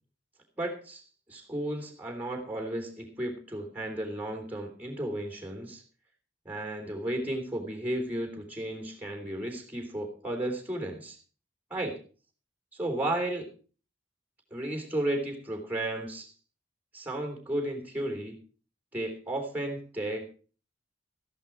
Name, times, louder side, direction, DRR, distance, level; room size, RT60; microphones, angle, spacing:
voice 1, 0.6-1.0 1.3-5.8 6.5-11.2 11.7-12.0 12.7-13.5 14.5-16.3 16.9-18.4 18.9-20.3, right 1 dB, 10° right, 4 dB, 3.4 m, -33 dB
14.5 x 11.0 x 4.5 m, 0.38 s
head